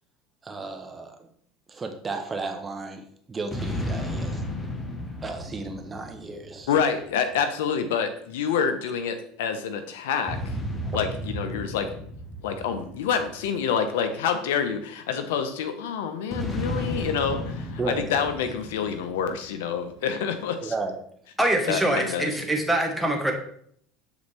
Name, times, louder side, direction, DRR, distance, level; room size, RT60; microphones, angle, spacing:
voice 1, 0.4-1.2 1.7-3.0 3.3-4.5 5.2-6.7 10.8-11.0 17.8-18.0 20.6-21.0, right 3 dB, 20° right, 5 dB, 0.9 m, -33 dB
sound 1, 3.5-7.1 10.3-13.9 16.3-19.7, left 1 dB, 15° left, 1.0 m, -33 dB
voice 2, 6.7-10.5 10.9-11.9 12.4-20.7 21.7-22.3, left 7 dB, 85° left, 9 dB, 0.7 m, -27 dB
voice 3, 21.4-23.3, right 1 dB, 5° right, 1 dB, 1.2 m, -24 dB
7.1 x 4.0 x 3.3 m, 0.64 s
supercardioid pair, 105°, 0 cm